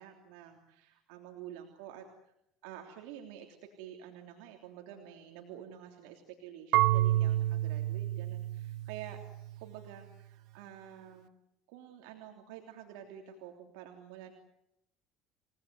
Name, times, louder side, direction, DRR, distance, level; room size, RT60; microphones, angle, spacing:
voice 1, 0.0-2.3 2.6-9.2 9.6-11.3 11.7-14.3, right 10 dB, 85° right, 3 dB, 3.3 m, -49 dB
Marimba xylophone / Wood, 6.7-9.6, right 15 dB, 65° right, 1.3 m, -29 dB
29.0 x 19.0 x 9.4 m, 0.79 s
cardioid pair, 125°, 0 cm